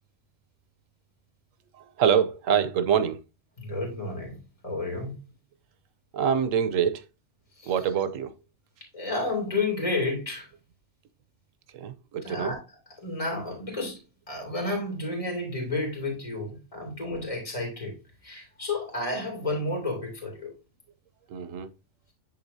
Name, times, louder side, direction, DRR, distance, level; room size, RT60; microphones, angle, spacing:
voice 1, 1.8-3.2 6.1-7.0 7.6-8.3 11.7-12.5 21.3-21.7, right 8 dB, 90° right, 1.1 m, -25 dB
voice 2, 3.6-5.2 7.6-7.7 8.9-10.5 12.2-12.6 13.0-14.0 14.3-17.9 18.2-20.5, left 2 dB, 25° left, 2.6 m, -31 dB
11.0 x 3.8 x 2.7 m
omnidirectional pair, 1.3 m